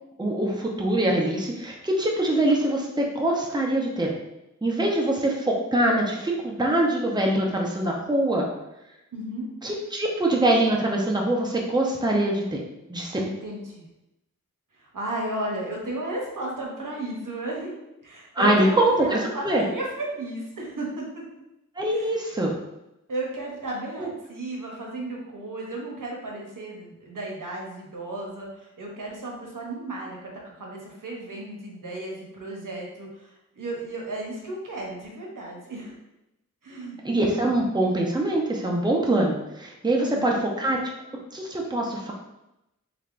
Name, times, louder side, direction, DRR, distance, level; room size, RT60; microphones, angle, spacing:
voice 1, 0.2-4.1 4.6-8.5 9.6-12.6 12.9-13.2 18.3-19.6 21.8-22.5 24.0-24.1 37.0-40.8 41.3-42.1, right 1 dB, 15° right, -1 dB, 0.7 m, -23 dB
voice 2, 9.1-9.5 13.2-13.8 14.7-21.2 21.9-22.1 23.1-36.0 36.6-37.0 39.9-40.4, right 1 dB, 90° right, -2 dB, 0.9 m, -34 dB
3.4 x 3.3 x 2.5 m, 0.90 s
wide cardioid pair, 55°, 31 cm